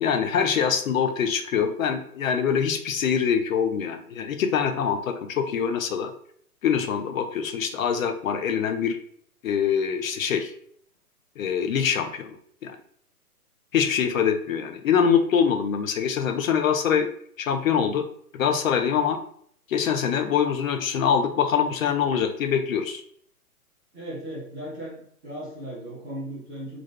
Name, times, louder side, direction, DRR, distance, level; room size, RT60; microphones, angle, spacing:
voice 1, 0.0-6.1 6.6-9.0 9.4-10.5 11.4-12.8 13.7-17.1 17.4-18.0 18.3-19.2 19.7-23.0, left 7 dB, 60° left, 7 dB, 0.5 m, -24 dB
voice 2, 23.9-25.0 25.2-26.8, right 1 dB, 10° right, -10 dB, 0.4 m, -36 dB
2.5 x 2.4 x 3.2 m, 0.63 s
hypercardioid pair, 130°, 46 cm